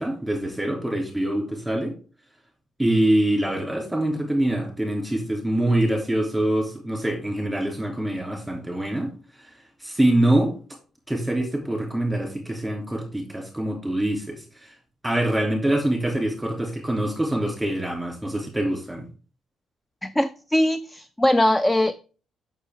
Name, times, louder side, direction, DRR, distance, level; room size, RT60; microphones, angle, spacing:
voice 1, 0.0-1.9 2.8-9.1 9.4-9.5 9.8-10.5 11.1-14.7 15.0-19.0, right 1 dB, 5° right, 2 dB, 3.1 m, -24 dB
voice 2, 20.0-21.9, left 1 dB, 10° left, 14 dB, 0.4 m, -21 dB
6.6 x 6.2 x 3.6 m, 0.37 s
cardioid pair, 90°, 0 cm